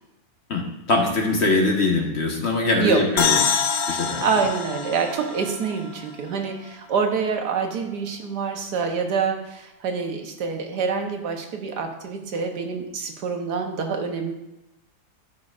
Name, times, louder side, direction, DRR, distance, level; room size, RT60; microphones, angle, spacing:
voice 1, 0.5-3.4 3.9-4.3, left 2 dB, 45° left, 1 dB, 1.3 m, -22 dB
sound 1, 3.2-6.7, left 6 dB, 65° left, 1.1 m, -26 dB
voice 2, 4.2-14.3, right 5 dB, 85° right, 4 dB, 1.6 m, -26 dB
13.0 x 6.2 x 2.5 m, 0.90 s
omnidirectional pair, 1.7 m